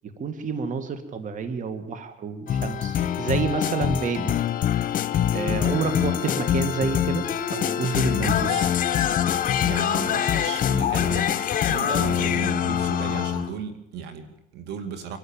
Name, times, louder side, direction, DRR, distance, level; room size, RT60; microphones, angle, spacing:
voice 1, 0.2-4.3 5.3-8.6, right 5 dB, 50° right, 9 dB, 2.3 m, -29 dB
sound 1, 2.5-13.6, left 9 dB, 55° left, 1.7 m, -24 dB
voice 2, 5.6-6.2 8.3-8.7 9.6-15.2, right 7 dB, 80° right, 9 dB, 2.7 m, -35 dB
25.0 x 12.5 x 9.1 m, 0.84 s
cardioid pair, 110°, 17 cm